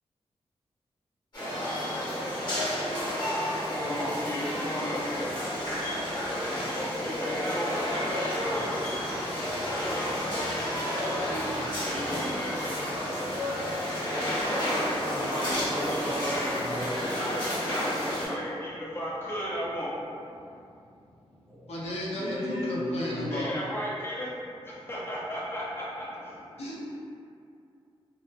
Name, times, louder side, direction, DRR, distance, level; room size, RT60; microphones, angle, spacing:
sound 1, 1.3-18.3, equal, 45° left, 1.1 m, -31 dB
voice 1, 2.7-8.9 11.7-13.0 16.7-20.6 23.3-26.6, equal, 25° left, -6 dB, 0.5 m, -36 dB
voice 2, 10.9-11.5 12.1-12.2 15.0-16.9 21.5-21.6 22.1-23.4, equal, 20° right, -8 dB, 0.6 m, -34 dB
voice 3, 21.3-23.5 26.6-26.9, left 1 dB, 90° left, -5 dB, 0.5 m, -34 dB
2.8 x 2.1 x 2.2 m, 2.5 s
wide cardioid pair, 145°, 10 cm